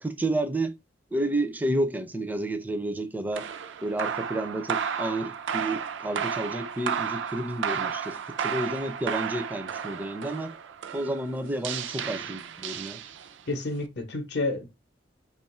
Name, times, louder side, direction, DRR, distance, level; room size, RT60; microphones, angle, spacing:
voice 1, 0.0-0.8 1.1-3.5 3.8-10.5 10.9-13.0, right 1 dB, 10° right, 0.4 m, -30 dB
sound 1, 3.3-13.5, right 7 dB, 85° right, 0.4 m, -33 dB
voice 2, 13.5-14.7, left 2 dB, 65° left, 0.7 m, -30 dB
2.8 x 2.4 x 4.1 m
head